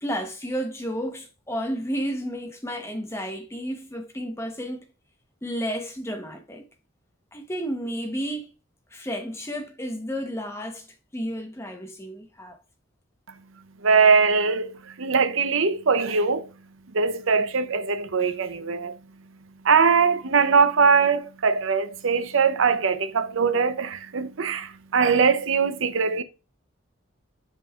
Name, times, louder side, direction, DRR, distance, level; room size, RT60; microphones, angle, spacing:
voice 1, 0.0-4.8 5.4-6.6 7.3-8.5 8.9-10.9 11.1-12.6, equal, 10° left, 0.9 m, -32 dB
voice 2, 13.8-16.5 16.9-18.9 19.6-26.2, right 5 dB, 70° right, 0.6 m, -21 dB
7.4 x 5.3 x 2.4 m
head